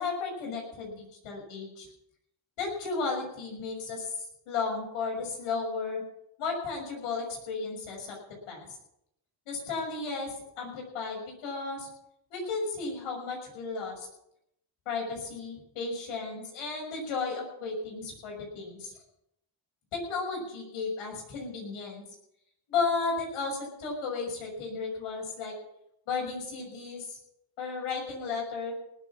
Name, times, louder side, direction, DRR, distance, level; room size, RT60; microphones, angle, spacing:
voice 1, 0.0-1.9 2.6-4.1 4.5-6.0 6.4-8.2 8.5-8.6 9.5-11.9 12.3-14.1 14.8-18.9 19.9-22.0 22.7-25.5 26.1-27.2 27.6-28.7, left 4 dB, 85° left, 0 dB, 6.5 m, -34 dB
19.0 x 7.5 x 7.4 m, 0.79 s
cardioid pair, 80°, 49 cm